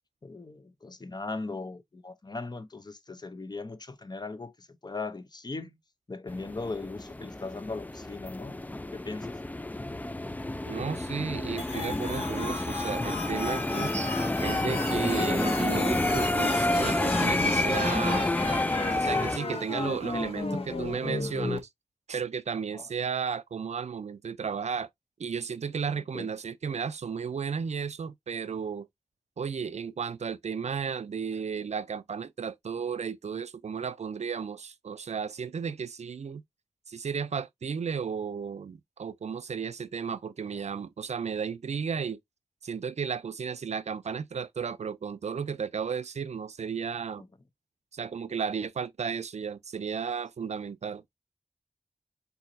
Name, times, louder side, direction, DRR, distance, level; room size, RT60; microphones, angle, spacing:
voice 1, 0.2-5.8 6.1-8.6 8.9-9.4 15.1-15.2 22.7-22.9 26.1-26.3 47.2-47.3, left 3 dB, 40° left, 0.7 m, -38 dB
sound 1, 6.3-19.4, left 2 dB, 15° left, 0.3 m, -29 dB
voice 2, 10.7-18.3 18.9-21.7 22.1-24.9 25.2-28.9 29.4-36.4 36.9-42.2 42.6-47.2 47.9-51.0, right 6 dB, 90° right, 0.4 m, -34 dB
sound 2, 11.6-21.6, left 2 dB, 60° left, 1.3 m, -35 dB
4.5 x 4.1 x 2.6 m
wide cardioid pair, 80°, 11 cm